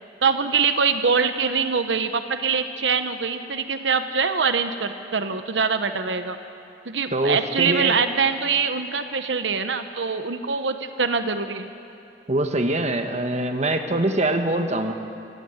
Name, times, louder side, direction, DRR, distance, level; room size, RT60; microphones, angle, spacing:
voice 1, 0.2-6.4 6.9-11.7, right 5 dB, 90° right, 8 dB, 1.0 m, -23 dB
voice 2, 7.1-8.0 12.3-14.9, right 1 dB, 40° right, 6 dB, 1.5 m, -23 dB
27.0 x 16.5 x 8.1 m, 2.7 s
head